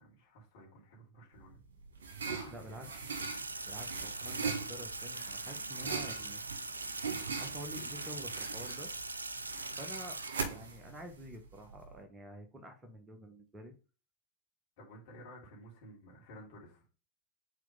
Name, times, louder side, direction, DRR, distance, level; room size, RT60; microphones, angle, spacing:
voice 1, 0.0-1.6 2.2-2.8 14.8-16.8, equal, 50° left, -3 dB, 3.2 m, -53 dB
sound 1, 1.4-12.0, right 5 dB, 65° right, 1.7 m, -41 dB
voice 2, 2.5-2.9 3.6-6.4 7.3-8.9 9.8-10.2 10.5-13.7, equal, 15° right, 4 dB, 1.3 m, -48 dB
Sink (filling or washing), 3.2-10.3, right 2 dB, 80° right, 0.4 m, -41 dB
4.9 x 4.6 x 5.4 m, 0.34 s
figure-of-eight pair, 90°, 0 cm